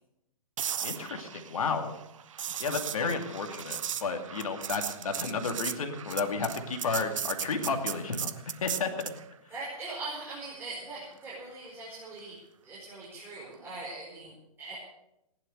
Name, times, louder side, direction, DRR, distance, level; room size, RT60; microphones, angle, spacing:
sound 1, 0.6-9.2 13.4-13.6, right 9 dB, 55° right, 1.0 m, -37 dB
voice 1, 0.8-1.9 2.6-8.9, left 4 dB, 65° left, 6 dB, 2.5 m, -32 dB
voice 2, 9.5-12.4 12.6-14.3 14.6-14.8, right 2 dB, 10° right, -6 dB, 5.4 m, -41 dB
18.0 x 11.5 x 6.6 m, 0.87 s
figure-of-eight pair, 125°, 19 cm